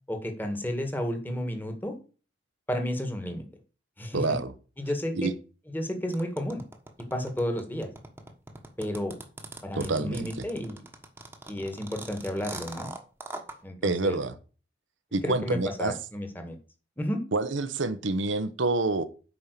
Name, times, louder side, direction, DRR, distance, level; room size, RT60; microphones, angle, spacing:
voice 1, 0.1-1.9 2.7-3.4 4.0-4.4 4.8-5.3 5.7-6.6 7.1-7.9 8.8-9.1 9.6-10.8 11.5-12.9 13.6-14.2 15.2-16.6 17.0-17.2, equal, 10° left, 1.7 m, -32 dB
voice 2, 4.1-4.5 5.1-5.3 9.7-10.3 13.8-14.3 15.1-15.9 17.3-19.0, right 3 dB, 90° right, 1.0 m, -27 dB
sound 1, 6.1-13.6, right 2 dB, 10° right, 1.3 m, -41 dB
8.7 x 5.5 x 6.8 m
head